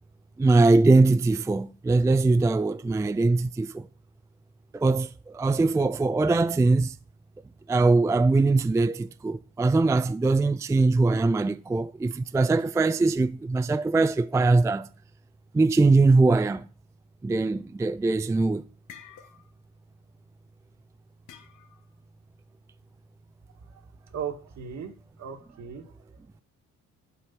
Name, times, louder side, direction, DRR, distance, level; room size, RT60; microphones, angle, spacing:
voice 1, 0.4-3.9 4.7-7.0 7.7-14.9 15.5-16.7 17.2-18.6, right 3 dB, 10° right, 0.3 m, -22 dB
sound 1, 18.7-19.7 20.0-20.3 21.3-22.0, left 8 dB, 85° left, 1.2 m, -50 dB
voice 2, 24.1-24.9 25.2-26.4, right 7 dB, 60° right, 1.8 m, -37 dB
11.5 x 4.6 x 5.9 m
cardioid pair, 90°, 30 cm